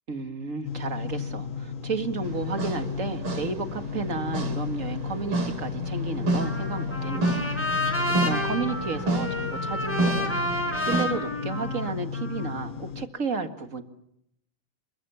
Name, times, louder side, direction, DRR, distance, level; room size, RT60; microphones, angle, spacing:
voice 1, 0.1-7.5 8.2-13.8, right 4 dB, 40° right, 7 dB, 2.1 m, -33 dB
sound 1, 0.6-13.1, left 6 dB, 45° left, 1.2 m, -34 dB
sound 2, 2.2-11.1, right 2 dB, 70° right, 4.0 m, -31 dB
Trumpet, 6.4-12.7, left 1 dB, 5° left, 5.5 m, -30 dB
27.5 x 23.5 x 7.1 m, 0.76 s
omnidirectional pair, 2.4 m